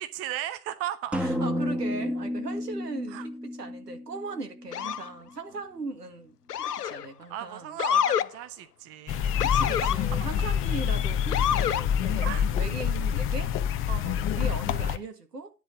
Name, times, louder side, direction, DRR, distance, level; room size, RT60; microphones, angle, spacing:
voice 1, 0.1-1.2 3.1-3.3 7.3-9.3 9.6-10.3 12.2-12.5 13.9-14.1, right 12 dB, 30° right, 0.9 m, -36 dB
sound 1, 1.1-4.9, left 1 dB, 5° right, 1.1 m, -32 dB
voice 2, 1.2-7.8 9.4-13.5 14.0-15.5, right 3 dB, 85° right, 1.9 m, -39 dB
Motor vehicle (road) / Siren, 4.7-5.1 6.5-7.1 7.8-8.3 9.4-10.0 11.3-11.9, left 9 dB, 85° left, 0.6 m, -26 dB
sound 2, 9.1-15.0, left 8 dB, 25° left, 0.8 m, -27 dB
10.5 x 4.0 x 7.1 m
figure-of-eight pair, 95°, 46 cm